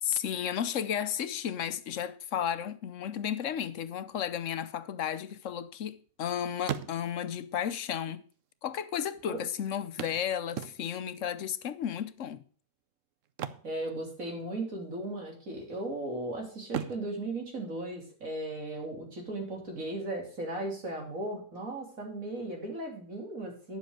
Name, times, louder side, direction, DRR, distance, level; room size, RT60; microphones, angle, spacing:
voice 1, 0.0-8.2 8.6-12.4, left 9 dB, 70° left, 1.1 m, -33 dB
sound 1, 5.0-6.2 6.5-7.4 8.3-8.4 8.6-8.7 10.0-11.2 13.2-14.5 14.8-15.1 15.6-16.2 16.6-18.4 20.4-20.5 20.9-21.0, right 9 dB, 70° right, 1.1 m, -40 dB
voice 2, 13.6-23.8, right 1 dB, 85° right, 3.8 m, -36 dB
10.0 x 7.5 x 6.4 m
omnidirectional pair, 1.4 m